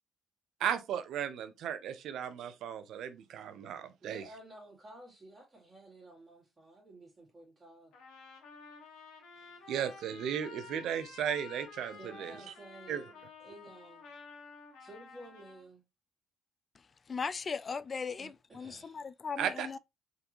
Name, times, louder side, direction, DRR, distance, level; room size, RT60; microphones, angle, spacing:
voice 1, 0.6-4.2 9.7-12.4 12.9-13.0 19.4-19.7, right 9 dB, 75° right, 0.6 m, -35 dB
voice 2, 4.0-7.9 12.0-13.1 13.4-14.1 14.8-15.8 18.2-19.1, right 1 dB, 30° right, 2.2 m, -53 dB
Trumpet, 7.9-15.7, left 5 dB, 80° left, 1.5 m, -51 dB
voice 3, 17.1-19.8, left 5 dB, 40° left, 0.3 m, -38 dB
3.9 x 3.4 x 3.0 m
cardioid pair, 80°, 0 cm